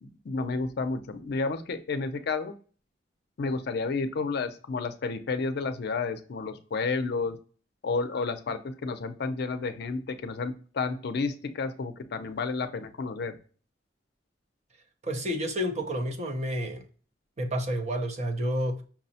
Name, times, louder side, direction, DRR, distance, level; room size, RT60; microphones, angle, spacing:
voice 1, 0.0-2.5 3.4-7.4 7.8-13.3, left 4 dB, 60° left, 0.4 m, -31 dB
voice 2, 15.0-16.8 17.4-18.8, equal, 40° right, 0.6 m, -30 dB
5.9 x 2.0 x 2.7 m
head